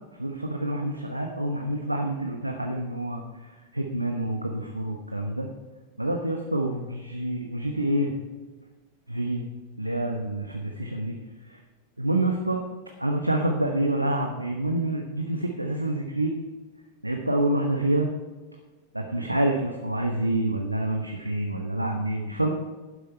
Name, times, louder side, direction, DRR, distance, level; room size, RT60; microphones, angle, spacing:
voice 1, 0.2-3.2 3.7-5.5 6.0-8.1 9.1-9.5 9.8-11.2 12.0-12.6 13.0-16.4 17.0-18.1 18.9-22.5, right 1 dB, 85° right, 3 dB, 1.0 m, -27 dB
12.0 x 10.5 x 4.5 m, 1.3 s
figure-of-eight pair, 90°, 0 cm